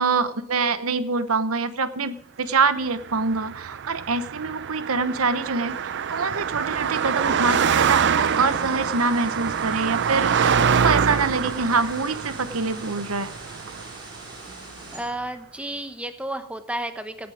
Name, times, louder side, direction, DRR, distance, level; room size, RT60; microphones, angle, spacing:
voice 1, 0.0-13.3, right 4 dB, 75° right, 12 dB, 1.1 m, -25 dB
Car passing by, 3.0-14.5, right 7 dB, 55° right, 0.5 m, -25 dB
sound 1, 8.2-15.0, right 1 dB, 20° right, 4.9 m, -42 dB
voice 2, 14.9-17.3, right 1 dB, 5° right, 8 dB, 1.0 m, -32 dB
17.5 x 8.4 x 5.0 m, 0.71 s
head